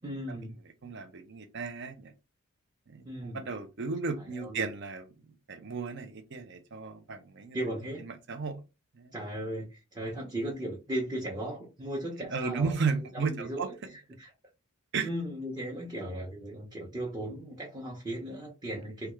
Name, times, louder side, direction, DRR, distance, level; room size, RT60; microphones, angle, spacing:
voice 1, 0.0-0.5 3.0-3.5 4.3-4.6 7.5-8.0 9.1-12.8 13.1-14.3 15.0-19.1, right 1 dB, 20° right, 0.8 m, -37 dB
voice 2, 0.8-2.1 2.9-7.6 8.0-8.6 8.9-9.1 12.3-13.7 14.9-15.1, right 4 dB, 55° right, 0.6 m, -34 dB
3.4 x 2.3 x 3.0 m
head